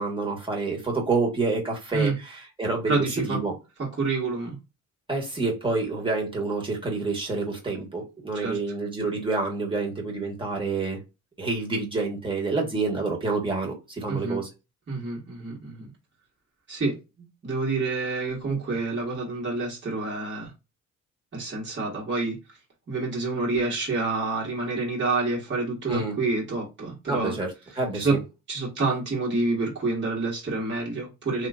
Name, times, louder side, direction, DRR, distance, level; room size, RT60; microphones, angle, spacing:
voice 1, 0.0-3.5 5.1-11.0 11.4-14.5 25.9-26.1 27.1-28.2, right 3 dB, 15° right, 1.6 m, -28 dB
voice 2, 2.9-3.4 4.0-4.6 8.3-8.6 14.1-14.4 14.9-15.9 16.7-20.5 21.3-22.4 22.9-27.4 27.9-28.2 28.5-31.5, right 3 dB, 40° right, 1.8 m, -28 dB
3.1 x 2.9 x 2.5 m
cardioid pair, 90°, 30 cm